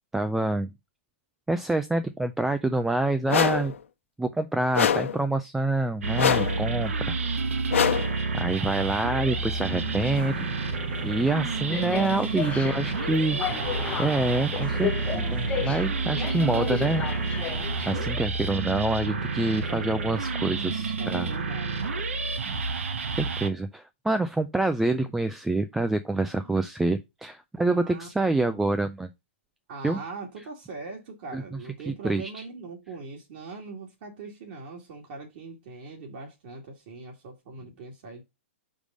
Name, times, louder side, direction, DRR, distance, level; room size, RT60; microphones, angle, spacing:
voice 1, 0.1-0.7 1.5-3.7 4.2-7.5 8.3-10.5 11.0-13.7 14.0-17.0 17.9-21.3 22.5-22.6 23.1-29.1 29.8-30.0 31.3-31.4 31.9-32.4, right 2 dB, 5° right, 0.3 m, -27 dB
sound 1, 3.3-3.7 4.7-5.2 6.2-6.6 7.7-8.2, left 8 dB, 85° left, 1.1 m, -24 dB
sound 2, 6.0-23.5, right 4 dB, 85° right, 1.2 m, -29 dB
sound 3, 9.3-18.1, left 9 dB, 20° left, 0.8 m, -35 dB
voice 2, 12.5-14.1 19.7-19.9 21.0-21.8 26.3-26.5 27.6-28.7 29.7-38.2, right 3 dB, 50° right, 2.3 m, -41 dB
5.2 x 4.9 x 5.1 m
hypercardioid pair, 155°, 7 cm